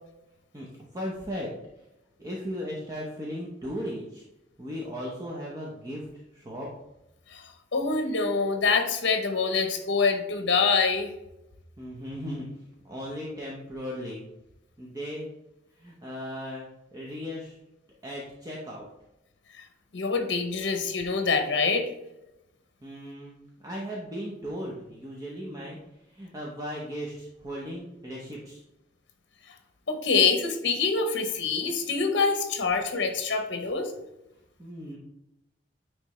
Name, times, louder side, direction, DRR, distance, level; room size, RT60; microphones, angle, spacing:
voice 1, 0.9-1.5 2.2-4.2 4.6-6.1 6.3-6.7 11.8-12.4 12.8-14.2 14.8-15.3 15.7-17.6 18.0-18.9 22.8-23.4 23.6-28.6 34.6-35.0, equal, 20° right, -4 dB, 0.9 m, -37 dB
voice 2, 7.3-11.1 19.9-21.9 29.9-33.9, left 4 dB, 65° left, 6 dB, 0.8 m, -25 dB
9.4 x 3.3 x 3.1 m, 0.92 s
head